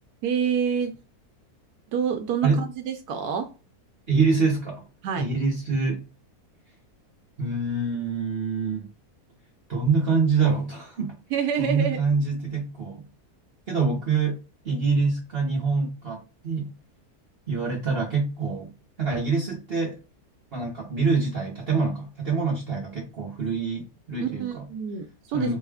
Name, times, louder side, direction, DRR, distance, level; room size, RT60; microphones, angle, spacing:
voice 1, 0.2-0.9 1.9-3.5 5.0-5.3 11.3-12.0 24.2-25.5, right 7 dB, 85° right, 1.1 m, -27 dB
voice 2, 4.1-4.8 5.2-6.0 7.4-8.9 9.7-11.2 11.6-13.1 13.7-16.7 17.5-20.0 20.5-24.7 25.3-25.6, right 4 dB, 45° right, 1.0 m, -25 dB
4.5 x 2.3 x 3.4 m
omnidirectional pair, 1.6 m